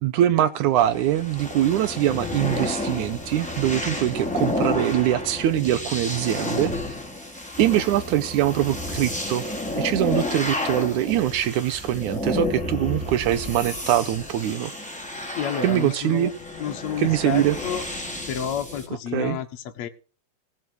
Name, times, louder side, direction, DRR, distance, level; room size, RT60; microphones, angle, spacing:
voice 1, 0.0-6.7 7.6-9.5 9.7-14.7 15.6-16.3 17.0-17.6 19.1-19.4, right 12 dB, 75° right, 2.1 m, -23 dB
sound 1, 0.8-18.9, left 2 dB, ahead, 3.0 m, -31 dB
voice 2, 15.4-16.3 16.6-17.8 18.3-19.9, left 9 dB, 60° left, 2.3 m, -30 dB
18.0 x 7.5 x 6.3 m
omnidirectional pair, 3.8 m